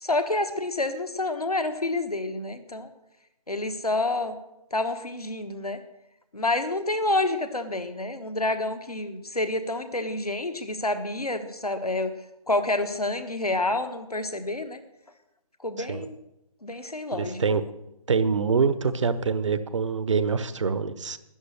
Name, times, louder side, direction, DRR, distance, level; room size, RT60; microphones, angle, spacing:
voice 1, 0.0-2.9 3.5-4.4 4.7-5.8 6.3-12.1 12.5-14.8 15.6-16.2 16.6-17.4, left 2 dB, 90° left, 8 dB, 1.4 m, -28 dB
voice 2, 17.1-17.6 18.1-21.2, right 5 dB, 55° right, 14 dB, 0.9 m, -25 dB
13.0 x 9.9 x 6.6 m, 0.91 s
figure-of-eight pair, 150°, 19 cm